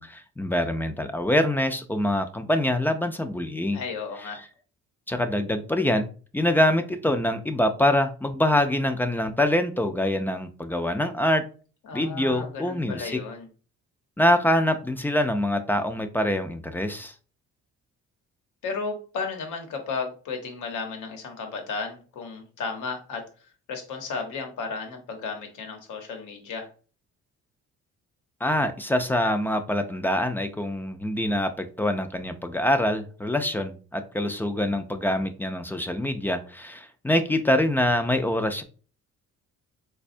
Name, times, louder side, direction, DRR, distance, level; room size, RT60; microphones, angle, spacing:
voice 1, 0.0-3.8 4.2-4.3 5.1-6.1 6.3-11.4 11.9-13.2 14.2-17.1 28.4-38.6, left 1 dB, 5° left, 8 dB, 0.3 m, -25 dB
voice 2, 3.7-4.4 11.8-13.5 18.6-23.2 23.7-26.7, left 4 dB, 80° left, 4 dB, 0.9 m, -34 dB
4.0 x 2.2 x 2.5 m, 0.38 s
cardioid pair, 90°, 30 cm